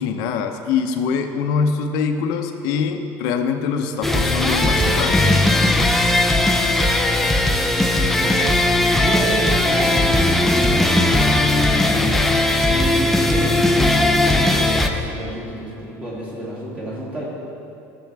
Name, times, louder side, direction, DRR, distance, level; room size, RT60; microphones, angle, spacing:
voice 1, 0.0-5.2, left 6 dB, 60° left, 6 dB, 0.8 m, -23 dB
sound 1, 4.0-14.9, left 1 dB, 5° left, 0.5 m, -18 dB
voice 2, 8.0-12.1 12.6-17.2, equal, 20° right, -7 dB, 2.7 m, -31 dB
16.0 x 7.0 x 3.5 m, 2.7 s
cardioid pair, 165°, 7 cm